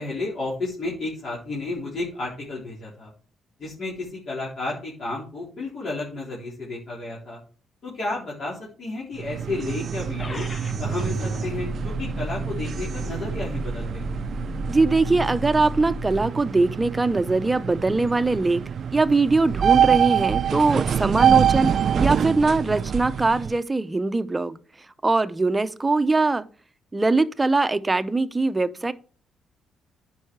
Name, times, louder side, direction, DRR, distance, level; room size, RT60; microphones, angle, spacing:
voice 1, 0.0-3.1 3.6-7.4 7.8-10.5 10.8-14.0, left 2 dB, 55° left, 3.7 m, -32 dB
sound 1, 9.1-23.6, right 8 dB, 55° right, 0.4 m, -25 dB
sound 2, 10.2-16.2, equal, 35° left, 1.0 m, -33 dB
voice 2, 14.7-18.6 18.9-24.6 25.0-26.4 26.9-28.9, right 3 dB, 20° right, 0.7 m, -22 dB
9.8 x 5.5 x 4.6 m
cardioid pair, 90°, 0 cm